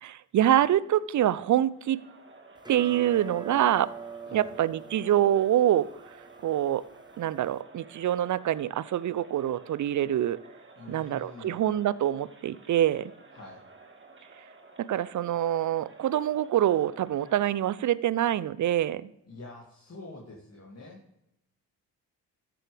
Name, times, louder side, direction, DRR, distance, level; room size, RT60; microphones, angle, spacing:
voice 1, 0.0-2.0 2.7-3.9 4.3-5.9 6.4-6.8 7.2-10.4 10.9-13.1 14.8-19.1, right 11 dB, 45° right, 19 dB, 0.6 m, -25 dB
Crowd, 1.7-18.0, right 3 dB, 25° right, 1.9 m, -53 dB
sound 1, 2.6-7.6, right 5 dB, 10° right, 0.8 m, -45 dB
voice 2, 10.8-11.6 13.3-13.6 19.3-21.0, left 2 dB, 35° left, -3 dB, 2.5 m, -46 dB
13.5 x 7.0 x 3.4 m, 0.86 s
hypercardioid pair, 45°, 42 cm